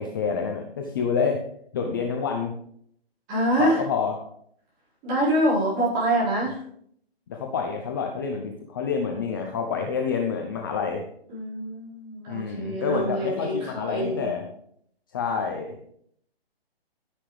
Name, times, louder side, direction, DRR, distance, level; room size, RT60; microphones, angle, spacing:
voice 1, 0.0-1.4 1.7-2.5 3.6-4.2 7.3-11.0 12.3-14.5 15.1-15.7, left 6 dB, 20° left, 3 dB, 0.6 m, -28 dB
voice 2, 3.3-3.8 5.0-6.6 11.3-14.3, right 1 dB, 20° right, -7 dB, 4.8 m, -25 dB
11.5 x 10.0 x 3.3 m, 0.67 s
hypercardioid pair, 155°, 31 cm